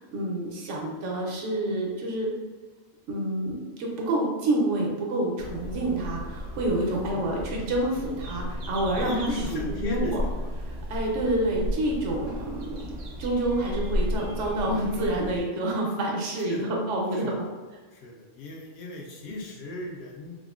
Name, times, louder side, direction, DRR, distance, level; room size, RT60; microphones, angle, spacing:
voice 1, 0.0-2.3 3.1-10.2 10.7-12.9 13.2-17.5, right 1 dB, 85° right, -1 dB, 1.0 m, -28 dB
sound 1, 5.4-15.4, equal, 65° right, 0.7 m, -34 dB
voice 2, 6.7-7.3 8.9-10.1 16.3-16.8 17.1-17.4 17.9-20.4, left 2 dB, 70° left, -2 dB, 0.8 m, -38 dB
3.5 x 2.4 x 2.3 m, 1.4 s
omnidirectional pair, 1.2 m